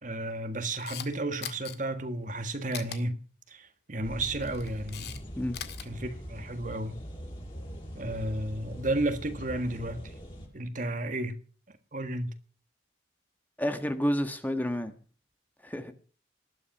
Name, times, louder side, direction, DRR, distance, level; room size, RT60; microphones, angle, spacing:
voice 1, 0.0-3.2 3.5-5.3 5.8-7.0 7.9-10.1 10.5-11.4 11.7-12.3, right 1 dB, 45° right, 1.6 m, -33 dB
Camera, 0.6-1.1 1.4-1.8 2.7-3.0 4.3-5.2 5.4-5.9, left 9 dB, 60° left, 1.9 m, -39 dB
sound 1, 4.0-10.5, equal, 25° left, 5.9 m, -42 dB
voice 2, 13.6-15.0 15.6-15.9, equal, 10° left, 1.4 m, -30 dB
20.0 x 12.0 x 6.0 m
head